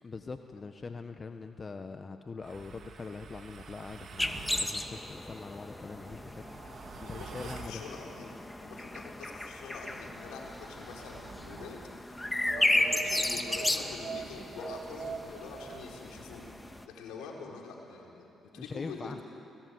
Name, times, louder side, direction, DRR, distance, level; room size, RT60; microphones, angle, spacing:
voice 1, 0.0-6.4 7.0-7.8 18.6-19.2, left 4 dB, 40° left, 7 dB, 1.4 m, -42 dB
sound 1, 2.4-4.8 5.7-7.8 9.4-11.8 12.5-15.9, right 6 dB, 60° right, 2.7 m, -45 dB
sound 2, 4.2-16.8, left 1 dB, 15° left, 2.2 m, -35 dB
voice 2, 6.6-8.3 8.6-11.8 12.1-16.4 16.9-19.1, left 4 dB, 80° left, 0 dB, 4.6 m, -45 dB
29.5 x 20.0 x 9.7 m, 2.9 s
supercardioid pair, 50°, 0 cm